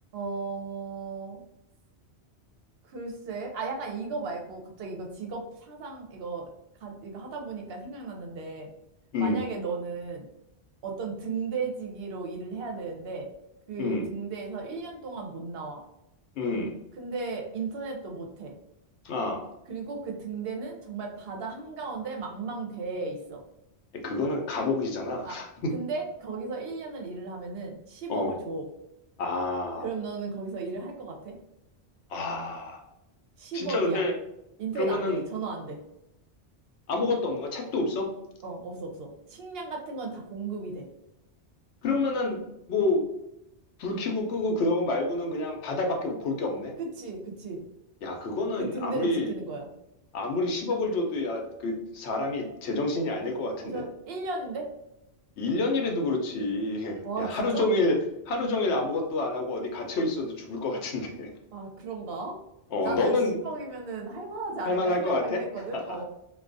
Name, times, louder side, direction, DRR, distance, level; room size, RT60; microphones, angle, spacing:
voice 1, 0.1-1.4 2.9-6.5 6.8-8.7 9.2-10.2 10.8-13.3 13.7-15.8 17.0-18.5 19.7-23.4 25.2-25.4 25.7-28.7 29.8-31.3 33.4-34.1 34.6-35.8 38.4-40.9 46.8-47.6 48.6-49.7 53.6-54.7 57.0-57.7 61.5-62.4 62.8-66.0, right 4 dB, 65° right, 2 dB, 0.8 m, -35 dB
voice 2, 16.4-16.7 19.0-19.4 24.0-25.7 28.1-28.4 29.2-29.8 32.1-32.8 33.5-34.1 34.8-35.2 36.9-38.1 41.8-42.4 42.7-43.0 43.8-46.7 48.0-49.3 50.1-53.8 55.4-58.0 58.3-61.3 62.7-63.3 64.6-65.4 65.7-66.0, left 2 dB, 80° left, 2 dB, 0.9 m, -28 dB
2.3 x 2.3 x 2.5 m, 0.84 s
omnidirectional pair, 1.1 m